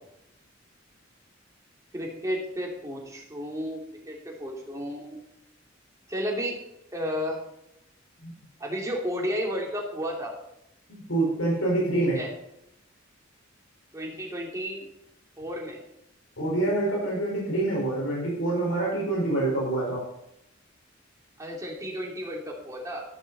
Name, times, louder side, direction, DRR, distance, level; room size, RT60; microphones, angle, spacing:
voice 1, 1.9-5.2 6.1-6.6 6.9-7.4 8.6-10.3 12.1-12.3 13.9-14.9 15.4-15.8 21.4-23.0, equal, 15° right, -1 dB, 2.8 m, -32 dB
voice 2, 10.9-12.2 16.4-20.0, right 2 dB, 90° left, -4 dB, 5.1 m, -26 dB
12.5 x 11.5 x 4.2 m, 0.83 s
head